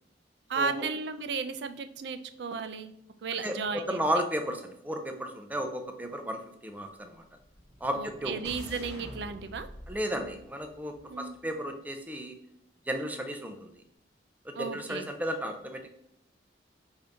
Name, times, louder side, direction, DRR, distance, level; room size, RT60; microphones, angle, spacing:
voice 1, 0.5-2.9 3.2-4.0 7.9-9.7 11.1-11.3 14.5-15.1, right 5 dB, 65° right, 10 dB, 0.4 m, -34 dB
voice 2, 3.4-7.2 7.8-8.4 9.9-12.4 12.9-13.7 14.4-15.9, equal, 10° right, 5 dB, 0.5 m, -34 dB
sound 1, 7.3-11.5, equal, 15° left, 1.0 m, -47 dB
5.1 x 2.7 x 3.4 m, 0.75 s
head